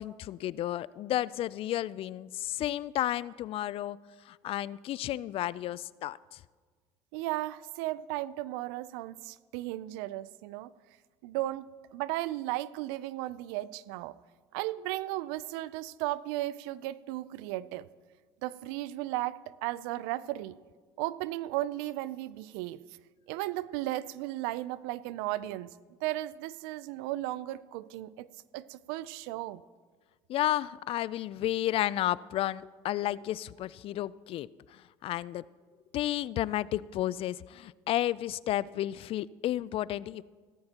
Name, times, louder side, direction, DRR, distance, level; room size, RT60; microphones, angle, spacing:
voice 1, 0.0-4.0 4.3-6.4 30.3-35.5 35.9-40.2, left 13 dB, 50° left, 20 dB, 0.4 m, -32 dB
voice 2, 7.1-10.7 11.2-14.2 14.5-17.9 18.4-20.6 21.0-22.8 23.3-25.7 26.0-28.3 28.5-29.6, right 16 dB, 80° right, 18 dB, 0.4 m, -35 dB
17.0 x 14.0 x 2.9 m, 1.5 s
supercardioid pair, 85°, 12 cm